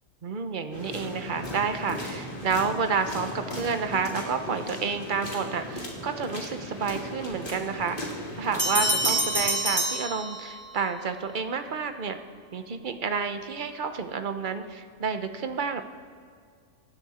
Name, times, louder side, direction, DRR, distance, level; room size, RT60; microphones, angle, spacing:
voice 1, 0.2-8.0 8.3-12.2 12.5-15.8, right 5 dB, 40° right, 8 dB, 0.9 m, -30 dB
sound 1, 0.7-9.5, left 1 dB, 35° left, 3.0 m, -37 dB
sound 2, 8.6-10.8, right 1 dB, 10° right, 1.5 m, -27 dB
25.0 x 12.0 x 4.3 m, 2.2 s
omnidirectional pair, 1.5 m